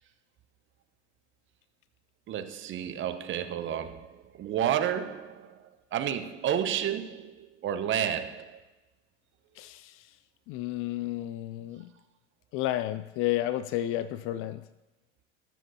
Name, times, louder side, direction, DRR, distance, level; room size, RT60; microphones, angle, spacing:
voice 1, 2.3-8.6, right 9 dB, 30° right, 0.9 m, -31 dB
voice 2, 9.6-10.0 10.5-11.9 12.5-14.6, left 14 dB, 35° left, 0.4 m, -31 dB
20.0 x 7.4 x 2.8 m
hypercardioid pair, 85°, 37 cm